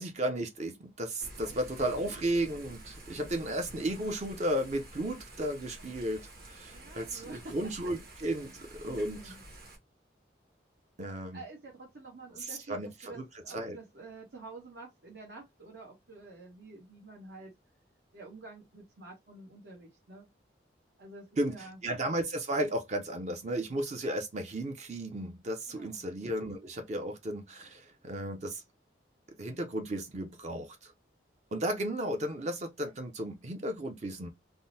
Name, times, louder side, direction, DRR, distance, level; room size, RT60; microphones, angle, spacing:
voice 1, 0.0-9.3 11.0-11.4 12.4-13.2 13.5-13.8 21.4-28.6 29.4-30.9 31.5-34.3, right 1 dB, 40° right, 0.5 m, -34 dB
Thunder / Rain, 1.2-9.8, right 1 dB, 55° right, 1.2 m, -50 dB
voice 2, 1.4-2.2 6.6-7.9 8.2-8.3 8.6-9.4 11.0-17.5 18.1-20.3 21.0-21.8 25.7-26.1, right 3 dB, 75° right, 1.0 m, -49 dB
3.6 x 2.0 x 2.6 m
head